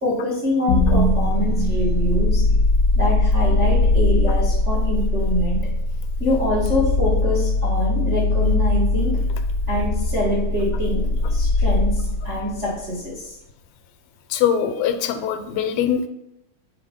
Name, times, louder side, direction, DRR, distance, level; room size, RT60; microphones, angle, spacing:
voice 1, 0.0-2.4 2.9-5.7 6.2-9.2 9.7-13.3, left 1 dB, 75° right, -7 dB, 0.6 m, -25 dB
sound 1, 0.7-12.8, left 2 dB, 65° left, 1.3 m, -20 dB
voice 2, 14.3-16.1, left 9 dB, 85° left, 9 dB, 2.4 m, -22 dB
5.1 x 3.9 x 5.0 m, 0.83 s
omnidirectional pair, 4.0 m